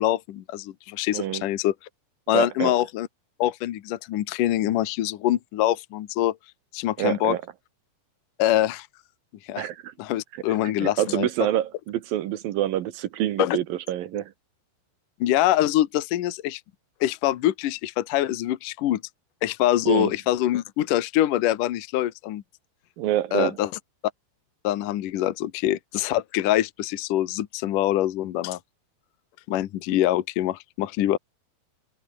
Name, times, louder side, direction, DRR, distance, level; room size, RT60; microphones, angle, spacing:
voice 1, 0.0-1.7 2.3-3.1 3.4-6.4 6.7-7.4 8.4-8.9 9.5-9.7 10.0-11.3 13.4-13.6 15.2-16.6 17.0-19.0 19.4-22.4 23.3-23.7 24.6-28.6 29.5-31.2, left 13 dB, 65° left, 2.2 m, -24 dB
voice 2, 1.1-1.4 2.3-2.7 7.0-7.4 9.6-9.9 10.8-14.3 19.9-20.1 23.0-23.6, right 12 dB, 65° right, 2.6 m, -26 dB
omnidirectional pair, 5.1 m